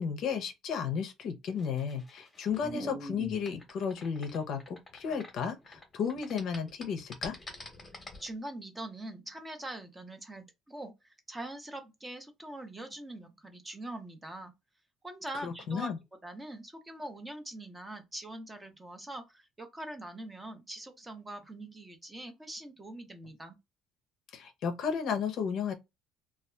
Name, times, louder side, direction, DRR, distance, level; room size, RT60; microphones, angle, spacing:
voice 1, 0.0-7.4 15.4-16.0 24.3-25.7, left 6 dB, 55° left, 0.5 m, -33 dB
sound 1, 1.5-5.8 6.1-8.3, equal, 15° left, 0.9 m, -43 dB
voice 2, 8.2-14.5 15.0-15.9 16.2-23.6, right 1 dB, 10° right, 0.5 m, -43 dB
2.6 x 2.3 x 2.2 m
cardioid pair, 140°, 0 cm